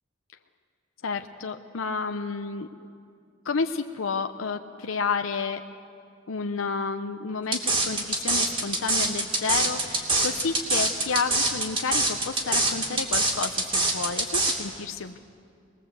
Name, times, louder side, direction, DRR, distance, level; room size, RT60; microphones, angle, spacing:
voice 1, 1.0-2.7 3.4-5.6 6.3-15.2, left 5 dB, 90° left, 6 dB, 0.7 m, -30 dB
sound 1, 7.5-14.5, right 2 dB, 25° right, 2.7 m, -24 dB
24.0 x 20.0 x 8.0 m, 2.4 s
head